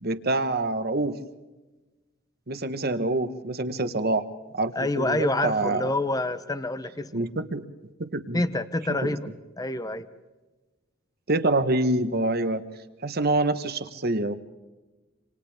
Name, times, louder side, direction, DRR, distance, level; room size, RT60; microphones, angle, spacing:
voice 1, 0.0-1.2 2.5-4.2 4.5-5.9 7.1-7.6 8.0-8.4 9.0-9.2 11.3-12.6 13.0-14.3, right 2 dB, 50° right, 10 dB, 1.2 m, -26 dB
voice 2, 4.8-7.3 8.3-9.3 9.6-10.1, left 2 dB, 20° left, 12 dB, 0.8 m, -27 dB
28.0 x 27.0 x 3.5 m, 1.2 s
head